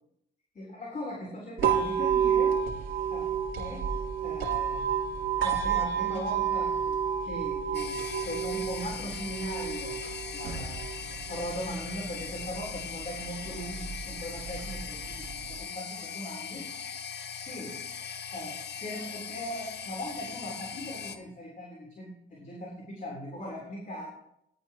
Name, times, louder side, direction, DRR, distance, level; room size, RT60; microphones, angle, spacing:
voice 1, 0.5-2.6 3.1-3.3 3.6-3.9 4.2-4.9 5.4-9.9 10.3-10.8 11.3-16.7 17.3-17.8 18.3-24.1, left 1 dB, 40° left, -2 dB, 3.7 m, -39 dB
sound 1, 1.6-15.6, right 8 dB, 70° right, 3.5 m, -31 dB
sound 2, 7.7-21.2, left 7 dB, 60° left, 1.0 m, -40 dB
18.0 x 11.0 x 3.0 m, 0.79 s
cardioid pair, 90°, 20 cm